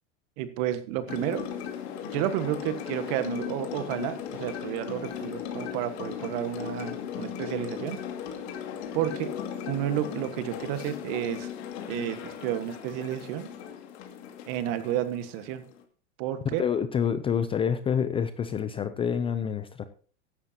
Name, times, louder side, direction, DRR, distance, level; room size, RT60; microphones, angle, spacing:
voice 1, 0.4-1.5 2.1-8.0 8.9-9.3 9.7-11.5 11.9-13.5 14.5-15.6 16.2-16.6, right 11 dB, 50° right, 11 dB, 1.5 m, -31 dB
sound 1, 1.1-15.8, left 9 dB, 60° left, 2.4 m, -37 dB
voice 2, 16.6-19.8, left 7 dB, 15° left, 11 dB, 0.4 m, -27 dB
15.0 x 11.0 x 2.8 m, 0.40 s
supercardioid pair, 135°, 36 cm